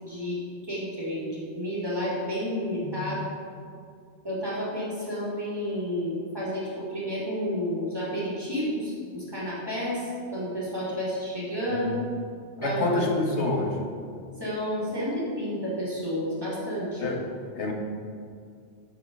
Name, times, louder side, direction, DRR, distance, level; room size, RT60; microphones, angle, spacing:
voice 1, 0.0-0.4 0.7-3.3 4.2-12.0 12.6-13.0 14.4-17.0, equal, 20° right, -8 dB, 2.5 m, -31 dB
voice 2, 12.6-13.8 17.0-17.2 17.5-17.7, left 2 dB, 70° left, 1 dB, 1.4 m, -27 dB
7.8 x 7.2 x 5.3 m, 2.2 s
omnidirectional pair, 1.2 m